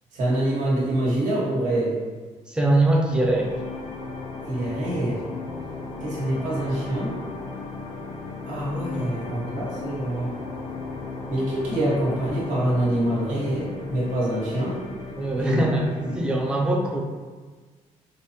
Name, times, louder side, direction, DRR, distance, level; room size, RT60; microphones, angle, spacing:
voice 1, 0.1-2.0 4.5-5.2 6.0-7.1 8.4-10.3 11.3-14.8 15.4-15.6 16.0-16.1, right 1 dB, 85° right, -7 dB, 1.3 m, -25 dB
voice 2, 2.5-3.6 15.1-17.0, right 1 dB, 5° right, -1 dB, 0.4 m, -22 dB
sound 1, 3.1-16.4, left 3 dB, 55° left, 0.5 m, -36 dB
4.8 x 2.0 x 2.8 m, 1.4 s
cardioid pair, 175°, 13 cm